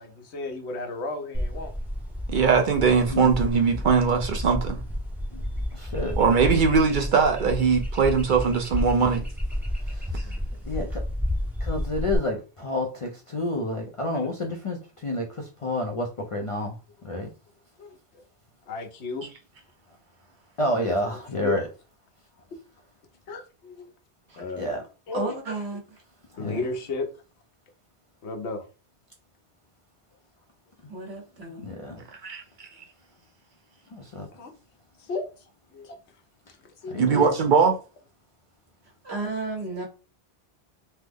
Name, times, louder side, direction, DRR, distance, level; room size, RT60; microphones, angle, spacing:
voice 1, 0.0-1.7 10.2-10.5 14.1-14.3 17.8-18.2 18.6-19.3 20.7-20.9 21.4-21.5 23.3-23.9 24.4-25.3 26.4-27.1 28.2-28.6 34.3-34.5 35.0-35.5 35.7-36.0 36.6-37.3, left 3 dB, 85° left, 1.0 m, -34 dB
sound 1, 1.3-12.2, left 1 dB, ahead, 0.5 m, -31 dB
voice 2, 2.3-4.8 6.2-9.2 10.1-10.2 19.2-19.3 32.2-32.7 37.0-37.8, right 5 dB, 60° right, 0.6 m, -21 dB
voice 3, 5.7-6.2 9.8-10.1 10.6-11.0 11.6-16.8 17.0-17.3 20.6-21.6 24.6-24.8 26.4-26.6 31.6-32.0 33.9-34.3 36.9-37.3, left 1 dB, 50° left, 0.4 m, -29 dB
voice 4, 25.1-26.0 30.9-31.7 38.8-39.9, right 3 dB, 75° right, 1.4 m, -33 dB
3.2 x 2.0 x 3.4 m
omnidirectional pair, 1.1 m